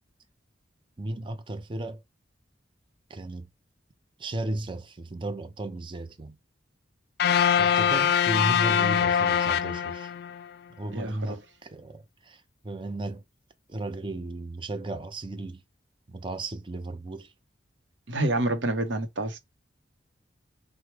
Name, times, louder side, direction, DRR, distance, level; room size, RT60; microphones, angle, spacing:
voice 1, 1.0-2.0 3.1-3.5 4.2-6.4 7.5-10.1 10.8-13.2 13.7-15.6 16.1-17.3, right 2 dB, 25° right, 0.5 m, -35 dB
sound 1, 7.2-10.4, left 8 dB, 55° left, 0.3 m, -23 dB
voice 2, 10.9-11.4 18.1-19.4, right 2 dB, 75° right, 0.8 m, -28 dB
4.5 x 2.1 x 3.2 m
head